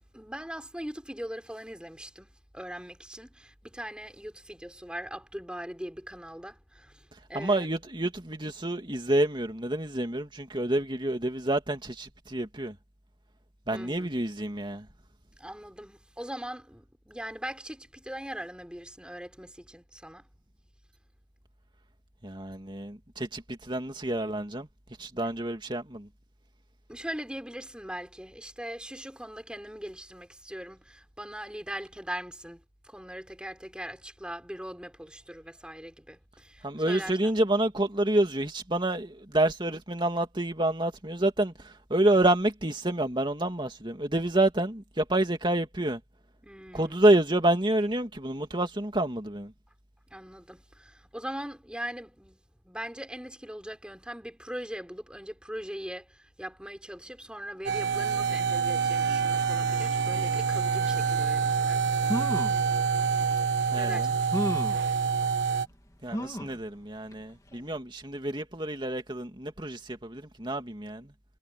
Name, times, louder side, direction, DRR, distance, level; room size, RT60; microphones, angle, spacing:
voice 1, 0.1-7.0 7.3-7.7 13.7-14.1 15.4-20.2 26.9-32.6 32.9-37.3 46.4-47.0 50.1-52.4 52.6-61.8 63.7-64.2, equal, 5° right, 5.5 m, -40 dB
voice 2, 7.3-12.8 13.7-14.9 22.2-24.7 25.0-26.1 36.6-46.0 46.7-49.5 63.7-64.2 66.0-71.1, right 1 dB, 25° right, 2.5 m, -28 dB
sound 1, 57.6-65.7, right 5 dB, 75° right, 1.4 m, -27 dB
sound 2, 61.6-61.7 62.0-62.6 63.4-63.5 64.3-64.8 66.1-66.6 67.1-67.2 67.5-67.6, equal, 20° left, 2.5 m, -32 dB
head